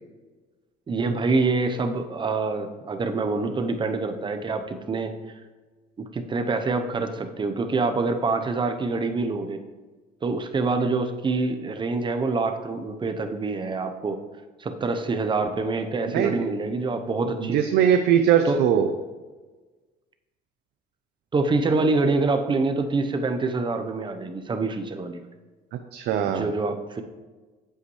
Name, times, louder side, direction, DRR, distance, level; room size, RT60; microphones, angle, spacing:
voice 1, 0.9-5.1 6.0-9.6 10.2-14.2 14.6-17.6 18.4-18.6 21.3-25.2 26.3-27.0, right 3 dB, 30° right, 7 dB, 0.8 m, -26 dB
voice 2, 16.1-16.5 17.4-18.9 25.9-26.5, right 8 dB, 75° right, 6 dB, 0.6 m, -21 dB
8.2 x 7.9 x 3.2 m, 1.3 s
cardioid pair, 110°, 17 cm